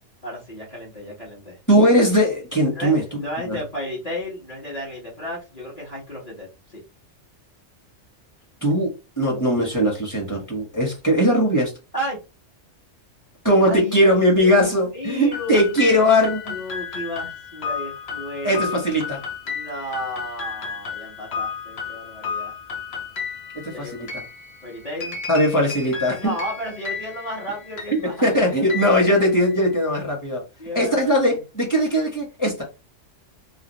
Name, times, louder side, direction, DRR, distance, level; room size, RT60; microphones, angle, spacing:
voice 1, 0.2-1.6 2.7-6.8 11.9-12.2 13.6-15.6 16.5-18.8 19.5-22.5 23.6-24.1 24.6-25.2 26.2-28.1 28.5-28.7 30.6-31.4, equal, 35° left, 1.5 m, -33 dB
voice 2, 1.7-3.0 3.4-3.6 8.6-11.7 13.4-16.6 18.4-19.2 23.5-24.2 25.3-26.3 28.0-30.4 30.7-32.6, equal, 15° left, 1.5 m, -19 dB
sound 1, 15.3-29.8, left 6 dB, 60° left, 1.1 m, -33 dB
3.2 x 2.6 x 3.1 m
omnidirectional pair, 1.3 m